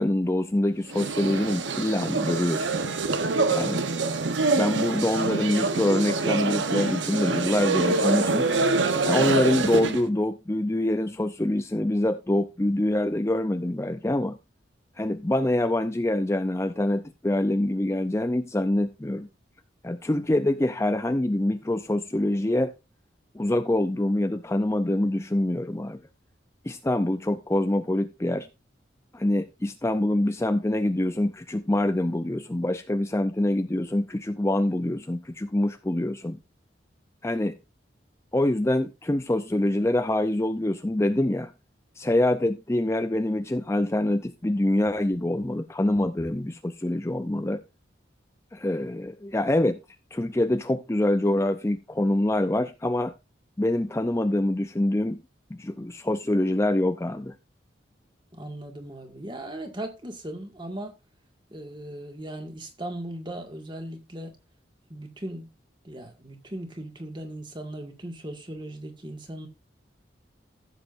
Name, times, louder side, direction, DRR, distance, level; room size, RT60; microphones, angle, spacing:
voice 1, 0.0-2.8 3.5-3.9 4.6-8.5 9.0-14.4 15.0-19.3 19.8-22.7 23.3-26.0 26.6-28.5 29.1-36.4 37.2-37.6 38.3-41.5 42.0-47.6 48.5-49.8 50.1-53.1 53.6-55.2 55.5-57.3, left 1 dB, 15° left, 0.5 m, -25 dB
sound 1, 0.9-10.1, right 3 dB, 85° right, 1.0 m, -25 dB
voice 2, 58.3-60.9 61.5-64.4 64.9-65.5 65.8-69.5, right 1 dB, 25° right, 1.9 m, -38 dB
15.0 x 7.5 x 2.6 m
head